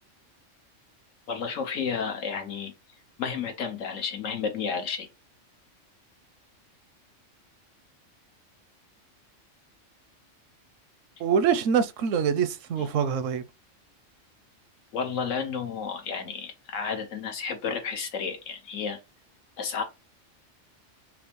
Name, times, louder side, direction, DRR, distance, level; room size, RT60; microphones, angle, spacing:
voice 1, 1.3-2.7 3.2-5.1 14.9-19.0 19.6-19.8, left 6 dB, 90° left, 1.3 m, -31 dB
voice 2, 11.2-13.4, right 7 dB, 80° right, 0.9 m, -24 dB
5.7 x 2.0 x 3.0 m
omnidirectional pair, 1.3 m